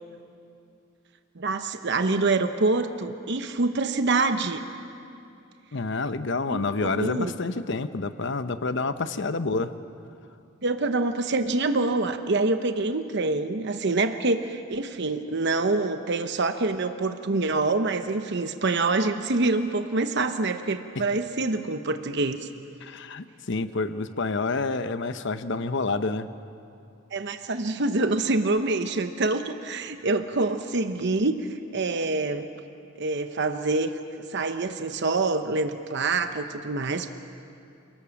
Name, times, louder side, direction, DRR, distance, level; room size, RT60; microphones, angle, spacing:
voice 1, 1.4-4.6 6.5-7.3 10.6-22.5 27.1-32.5 33.0-33.9 34.3-37.1, right 3 dB, 60° right, 8 dB, 0.9 m, -26 dB
voice 2, 5.7-9.7 22.8-26.3, left 3 dB, 60° left, 11 dB, 0.9 m, -28 dB
28.5 x 18.5 x 7.2 m, 2.6 s
head